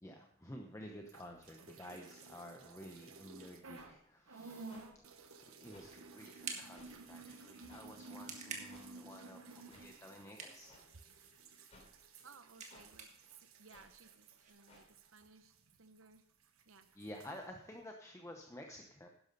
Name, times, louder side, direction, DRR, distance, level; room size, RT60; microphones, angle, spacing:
voice 1, 0.0-4.7 5.1-5.3 5.6-10.8 17.0-19.1, left 1 dB, 15° left, 3 dB, 0.9 m, -52 dB
sound 1, 1.0-4.0 4.3-16.2 16.4-17.4, right 3 dB, 85° right, 1.2 m, -55 dB
sound 2, 3.7-3.9 4.7-4.8 5.7-5.9 6.7-6.9 7.7-7.8 8.7-8.8 9.7-9.9 10.7-10.8 11.7-11.9 12.7-12.9 13.7-13.9 14.7-14.8, left 2 dB, 35° left, 3.2 m, -60 dB
sound 3, 5.3-14.5, right 4 dB, 35° right, 1.8 m, -53 dB
voice 2, 12.2-16.2 16.7-16.9, right 5 dB, 70° right, 10 dB, 1.0 m, -61 dB
12.0 x 10.5 x 4.0 m, 0.64 s
head